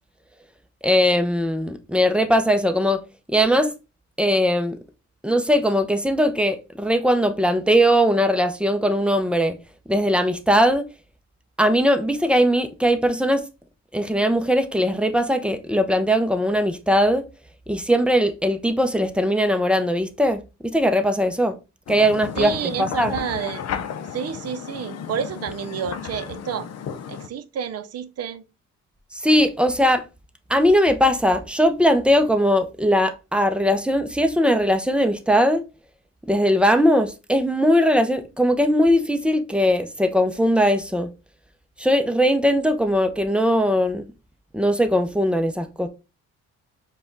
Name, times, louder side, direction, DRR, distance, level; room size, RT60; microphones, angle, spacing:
voice 1, 0.8-3.0 3.3-3.7 4.2-4.8 5.2-9.6 9.9-10.8 11.6-13.4 13.9-17.2 17.7-20.4 20.7-21.6 21.9-23.2 29.1-30.0 30.5-35.6 36.3-41.1 41.8-44.0 44.5-45.9, equal, 5° right, 0.6 m, -20 dB
sound 1, 21.9-27.3, left 8 dB, 55° left, 0.6 m, -33 dB
voice 2, 22.4-23.6 24.1-28.4, right 8 dB, 55° right, 0.6 m, -30 dB
4.9 x 2.4 x 3.8 m
cardioid pair, 90°, 30 cm